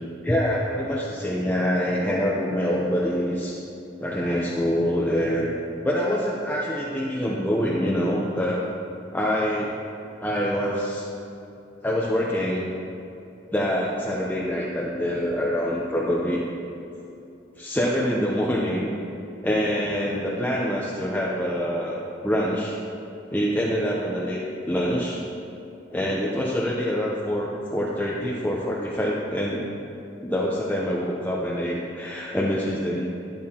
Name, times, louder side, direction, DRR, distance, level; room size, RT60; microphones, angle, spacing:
voice 1, 0.2-3.6 4.0-5.5 5.8-8.6 9.1-9.8 10.2-11.1 11.8-12.7 13.5-16.4 17.6-18.9 19.4-22.0 22.2-22.8 23.3-24.4 24.7-25.2 25.9-29.7 30.2-33.1, equal, 10° left, -5 dB, 0.7 m, -25 dB
12.5 x 11.0 x 2.9 m, 2.8 s
head